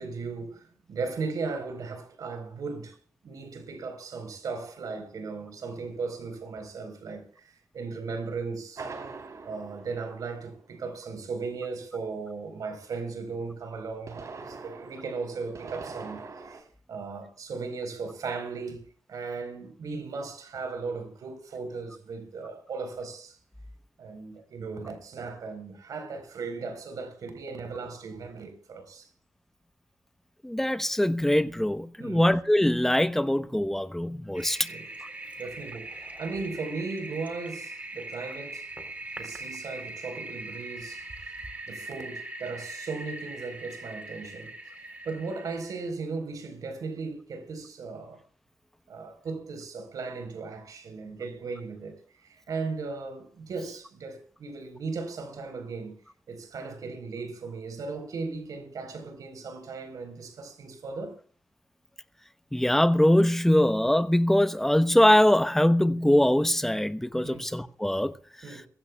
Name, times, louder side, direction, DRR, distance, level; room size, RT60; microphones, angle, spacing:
voice 1, 0.0-2.9 3.2-8.9 9.4-16.6 16.9-18.8 19.1-23.4 24.0-29.1 32.0-32.3 34.5-34.9 35.4-38.7 39.2-41.1 41.7-48.2 48.9-56.0 56.3-61.2 67.2-67.4 68.4-68.7, right 4 dB, 80° right, 4.2 m, -37 dB
sound 1, 8.8-10.8 13.8-16.6, right 4 dB, 60° right, 3.6 m, -42 dB
voice 2, 30.4-34.6 62.5-68.1, left 1 dB, 5° left, 0.9 m, -22 dB
Toilet flush, 34.3-45.9, right 2 dB, 25° right, 3.6 m, -41 dB
22.5 x 15.0 x 2.3 m
wide cardioid pair, 100°, 6 cm